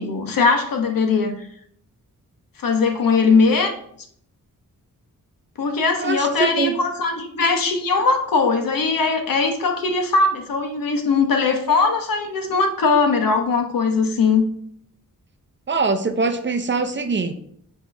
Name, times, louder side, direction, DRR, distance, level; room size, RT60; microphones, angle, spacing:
voice 1, 0.0-1.4 2.6-3.7 5.6-14.5, left 4 dB, 80° left, 4 dB, 1.1 m, -20 dB
voice 2, 6.0-6.3 6.6-6.7 15.7-17.3, right 4 dB, 35° right, 7 dB, 0.5 m, -23 dB
8.1 x 3.0 x 5.2 m, 0.66 s
wide cardioid pair, 130°, 33 cm